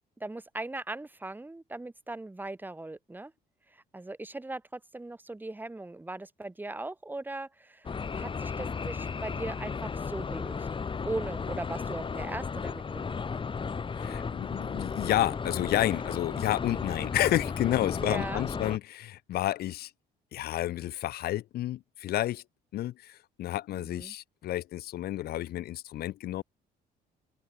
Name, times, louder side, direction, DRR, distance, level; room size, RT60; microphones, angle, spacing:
voice 1, 0.2-3.3 3.7-10.7 11.0-13.4 18.0-18.4 23.7-24.1, right 2 dB, 10° right, 2.8 m, -39 dB
sound 1, 7.8-18.8, left 5 dB, 30° left, 5.1 m, -34 dB
voice 2, 13.9-19.9 20.3-22.4 22.7-26.4, left 14 dB, 65° left, 1.3 m, -30 dB
open air
cardioid pair, 110°, 17 cm